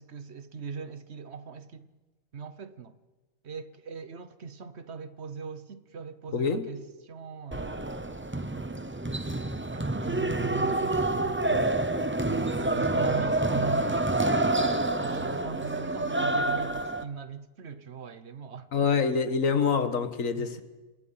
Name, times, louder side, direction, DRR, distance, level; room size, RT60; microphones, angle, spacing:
voice 1, 0.0-1.9 2.3-3.0 3.4-8.2 9.7-11.8 12.3-18.7 20.4-20.6, right 6 dB, 55° right, 1.2 m, -40 dB
voice 2, 6.3-6.7 18.7-20.6, left 5 dB, 80° left, 1.7 m, -26 dB
sound 1, 7.5-17.0, right 2 dB, 15° right, 0.5 m, -28 dB
28.0 x 19.5 x 5.7 m
omnidirectional pair, 1.4 m